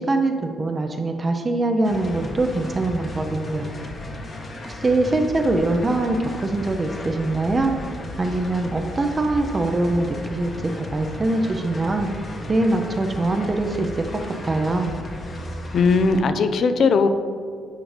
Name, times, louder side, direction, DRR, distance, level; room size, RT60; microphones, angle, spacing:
voice 1, 0.0-3.7 4.6-7.7 8.2-12.1 12.5-14.9, right 2 dB, 30° right, 4 dB, 0.6 m, -23 dB
sound 1, 1.8-16.2, left 1 dB, 45° left, 1.1 m, -35 dB
voice 2, 15.7-17.1, left 4 dB, 60° left, 9 dB, 0.5 m, -18 dB
8.9 x 5.0 x 3.3 m, 2.3 s
cardioid pair, 90°, 0 cm